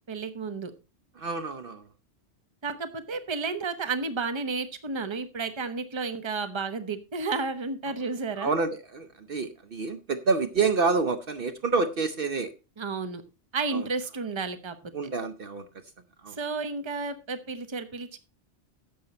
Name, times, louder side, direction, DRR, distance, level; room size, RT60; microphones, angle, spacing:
voice 1, 0.1-0.7 2.6-8.6 12.8-13.2 13.5-14.9 16.3-18.2, right 4 dB, 25° right, 10 dB, 0.9 m, -32 dB
voice 2, 1.2-1.8 8.4-12.5 13.7-13.9 14.9-15.7 16.2-16.4, right 4 dB, 55° right, 9 dB, 0.9 m, -28 dB
11.0 x 7.5 x 4.2 m, 0.30 s
omnidirectional pair, 1.2 m